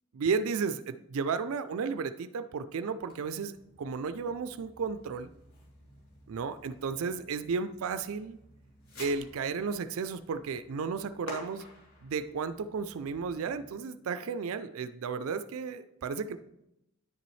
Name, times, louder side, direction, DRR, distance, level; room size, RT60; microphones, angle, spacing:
voice 1, 0.1-5.3 6.3-8.4 9.0-11.6 12.0-16.4, right 5 dB, 70° right, 13 dB, 0.4 m, -33 dB
Fireworks, 3.0-13.7, left 1 dB, 80° left, 3.1 m, -52 dB
10.0 x 6.7 x 3.2 m, 0.86 s
head